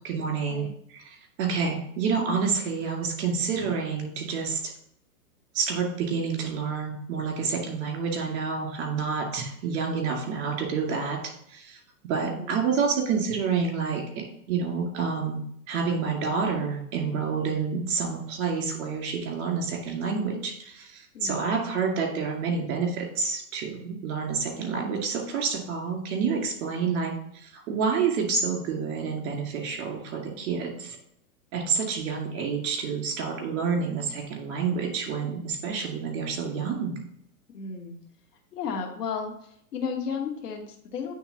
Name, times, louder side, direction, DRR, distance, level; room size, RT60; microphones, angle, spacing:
voice 1, 0.0-4.7 5.5-11.2 11.5-11.8 12.1-15.4 15.7-31.0 31.5-36.9, right 5 dB, 45° right, 1 dB, 2.4 m, -28 dB
voice 2, 37.5-37.9 38.5-39.3 39.7-41.1, left 6 dB, 85° left, 3 dB, 1.7 m, -33 dB
8.6 x 3.6 x 4.0 m, 0.70 s
hypercardioid pair, 135°, 46 cm